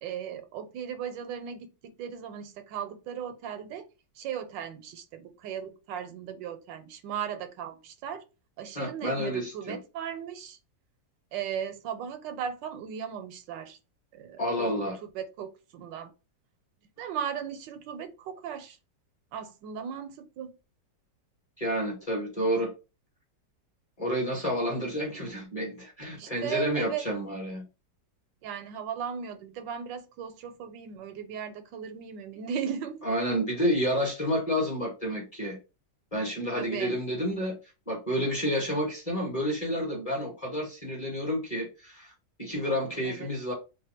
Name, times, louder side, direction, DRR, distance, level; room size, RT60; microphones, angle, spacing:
voice 1, 0.0-3.9 4.2-8.2 8.6-10.6 11.3-13.8 14.1-16.1 17.0-18.8 19.3-20.6 26.1-27.0 28.4-33.1 36.5-37.0 42.6-43.3, right 8 dB, 80° right, 1.3 m, -37 dB
voice 2, 8.7-9.8 14.4-15.0 21.6-22.7 24.0-27.6 33.0-35.6 36.1-37.5 37.9-42.1 42.4-43.5, equal, 25° left, 1.0 m, -30 dB
3.1 x 2.2 x 4.2 m
omnidirectional pair, 1.9 m